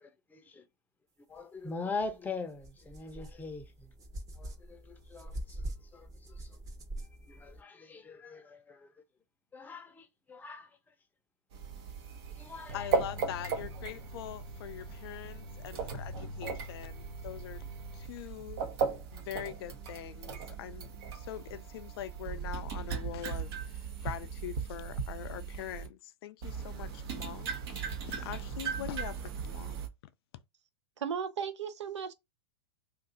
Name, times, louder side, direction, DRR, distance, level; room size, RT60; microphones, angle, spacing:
voice 1, 0.0-0.6 1.3-3.9 4.4-5.6 5.9-6.5 7.3-8.9 9.5-10.7 12.4-12.9, left 3 dB, 10° left, 0.6 m, -42 dB
sound 1, 2.0-2.1 2.6-7.6, right 1 dB, 25° right, 0.8 m, -43 dB
sound 2, 11.5-25.9 26.4-29.9, right 5 dB, 60° right, 0.9 m, -37 dB
voice 2, 12.7-17.6 17.9-18.6 19.1-29.8, left 12 dB, 60° left, 0.4 m, -43 dB
voice 3, 31.0-32.1, right 7 dB, 85° right, 0.5 m, -35 dB
2.6 x 2.5 x 3.8 m
hypercardioid pair, 115°, 14 cm